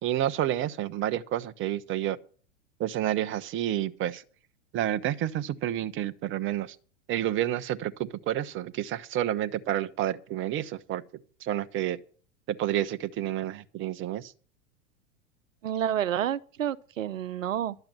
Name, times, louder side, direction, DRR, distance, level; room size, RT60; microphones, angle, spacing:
voice 1, 0.0-2.2 2.8-4.2 4.7-6.8 7.1-11.0 11.4-12.0 12.5-14.3, right 12 dB, 30° right, 0.8 m, -29 dB
voice 2, 15.6-17.8, right 10 dB, 80° right, 0.7 m, -29 dB
12.0 x 7.8 x 7.6 m
hypercardioid pair, 95°, 38 cm